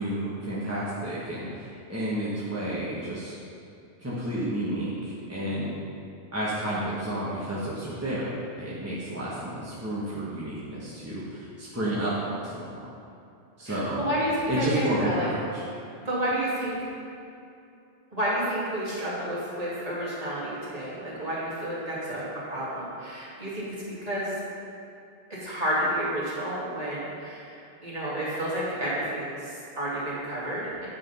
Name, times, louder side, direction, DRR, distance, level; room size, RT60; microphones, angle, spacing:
voice 1, 0.0-3.3 4.0-5.8 6.3-12.8 13.6-14.0 14.5-15.6, right 1 dB, 15° right, -9 dB, 1.2 m, -31 dB
voice 2, 13.7-15.3 16.0-16.8 18.1-24.4 25.3-30.9, right 1 dB, 30° right, -9 dB, 2.4 m, -30 dB
9.0 x 5.0 x 5.5 m, 2.7 s
omnidirectional pair, 1.2 m